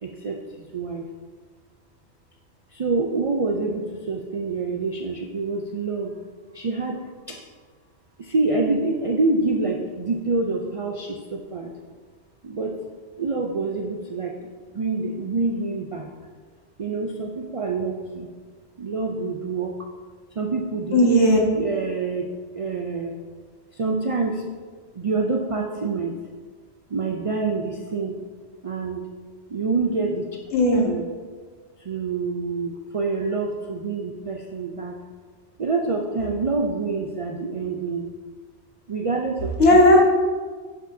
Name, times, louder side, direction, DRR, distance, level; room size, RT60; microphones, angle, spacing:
voice 1, 0.0-1.1 2.7-6.1 6.5-7.0 7.3-7.4 8.2-11.7 12.4-12.8 13.2-14.4 14.7-16.1 16.8-18.3 18.8-19.7 20.4-21.1 21.5-23.2 23.7-24.4 24.9-26.1 26.9-28.2 28.6-29.0 29.5-30.3 30.8-31.0 31.8-34.9 35.6-38.1 38.9-39.5 39.9-40.0, right 3 dB, 55° right, 0 dB, 0.3 m, -26 dB
voice 2, 20.9-21.4 30.5-30.9 39.6-40.0, left 1 dB, 75° left, -1 dB, 1.6 m, -15 dB
10.5 x 5.2 x 2.6 m, 1.5 s
omnidirectional pair, 1.2 m